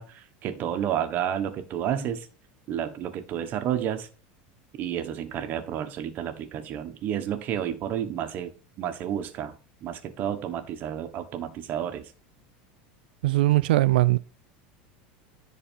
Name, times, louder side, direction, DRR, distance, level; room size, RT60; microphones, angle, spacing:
voice 1, 0.0-2.3 2.7-4.1 4.8-8.5 8.8-9.5 9.8-12.1, right 10 dB, 40° right, 1.3 m, -31 dB
voice 2, 13.2-14.2, right 17 dB, 90° right, 0.4 m, -20 dB
10.0 x 4.1 x 5.5 m
supercardioid pair, 145°, 5 cm